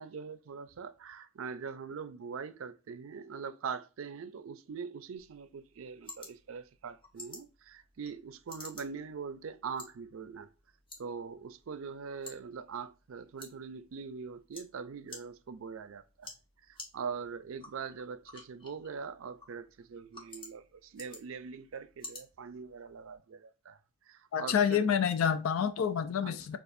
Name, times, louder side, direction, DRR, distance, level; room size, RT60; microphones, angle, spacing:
voice 1, 0.0-10.5 11.0-16.3 16.6-23.8 24.1-24.9 26.2-26.3, right 6 dB, 80° right, 0.4 m, -42 dB
sound 1, 5.2-23.2, left 2 dB, 25° left, 1.0 m, -53 dB
voice 2, 24.3-26.6, left 7 dB, 90° left, 0.4 m, -28 dB
6.7 x 2.4 x 2.4 m
head